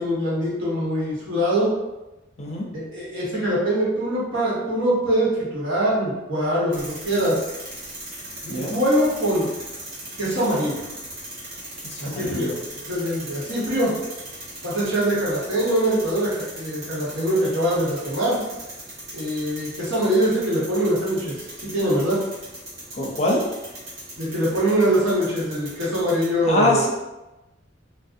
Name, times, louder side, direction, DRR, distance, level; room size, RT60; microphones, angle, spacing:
voice 1, 0.0-1.7 2.7-7.4 8.4-9.5 10.2-10.9 12.0-12.5 12.8-13.9 14.6-18.4 19.1-22.2 24.2-26.9, right 1 dB, 85° right, -7 dB, 1.0 m, -23 dB
sound 1, 6.7-26.3, right 1 dB, 50° right, 0.8 m, -39 dB
voice 2, 11.8-12.5 22.9-23.4 26.4-26.9, left 2 dB, 35° left, -2 dB, 0.5 m, -24 dB
2.6 x 2.0 x 2.5 m, 1.0 s
head